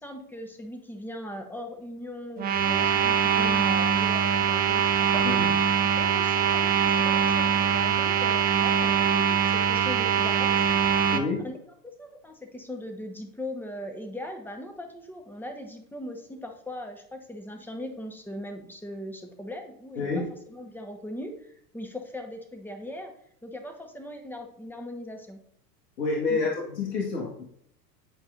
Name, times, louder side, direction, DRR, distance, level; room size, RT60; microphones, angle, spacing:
voice 1, 0.0-5.3 5.9-10.7 11.4-11.6 11.8-20.1 20.5-23.1 23.4-25.4 26.3-26.5, left 1 dB, 5° left, 4 dB, 1.1 m, -39 dB
sound 1, 2.4-11.2, right 8 dB, 20° right, 0.5 m, -23 dB
voice 2, 11.1-11.5 20.0-20.3 26.0-27.4, left 3 dB, 75° left, -2 dB, 1.8 m, -28 dB
9.8 x 4.7 x 2.6 m, 0.69 s
hypercardioid pair, 95°, 49 cm